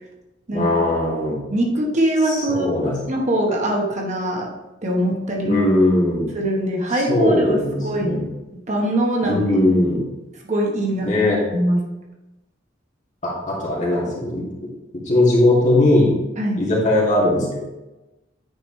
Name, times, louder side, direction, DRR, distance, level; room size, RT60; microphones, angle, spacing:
voice 1, 0.5-1.4 2.3-3.0 5.4-6.3 6.9-8.3 9.2-10.0 11.0-11.4 13.2-14.4 15.0-16.1 16.6-17.6, left 1 dB, 40° left, -5 dB, 2.4 m, -19 dB
voice 2, 1.5-2.7 3.1-4.5 4.8-5.6 6.3-8.2 8.7-9.4 10.4-11.1 11.5-11.8 16.4-16.6, right 1 dB, 40° right, -1 dB, 1.1 m, -22 dB
9.0 x 5.0 x 3.2 m, 1.0 s
head